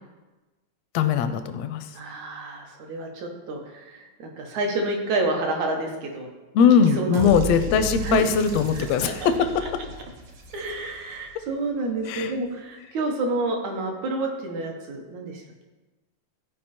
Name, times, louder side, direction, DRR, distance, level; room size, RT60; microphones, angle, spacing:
voice 1, 0.9-1.9 6.5-9.6 12.1-12.3, left 7 dB, 80° left, 9 dB, 1.5 m, -20 dB
voice 2, 1.9-6.3 7.0-7.4 7.7-8.2 9.0-9.3 10.5-15.6, right 2 dB, 75° right, 2 dB, 2.5 m, -29 dB
sound 1, 7.1-11.2, equal, 60° right, 1.9 m, -34 dB
14.0 x 5.0 x 4.3 m, 1.2 s
omnidirectional pair, 3.4 m